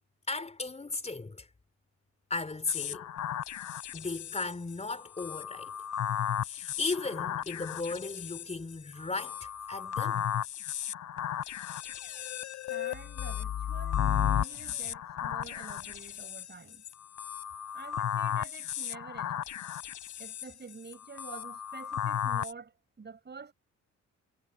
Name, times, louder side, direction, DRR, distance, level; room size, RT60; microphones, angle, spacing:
voice 1, 0.3-1.5 2.3-3.1 3.9-5.8 6.5-10.3, left 3 dB, 20° left, 4.2 m, -36 dB
sound 1, 2.7-22.5, left 10 dB, 70° left, 3.0 m, -35 dB
voice 2, 12.7-16.8 17.7-19.4 20.2-22.7 23.0-23.5, right 5 dB, 35° right, 6.3 m, -48 dB
cardioid pair, 90°, 30 cm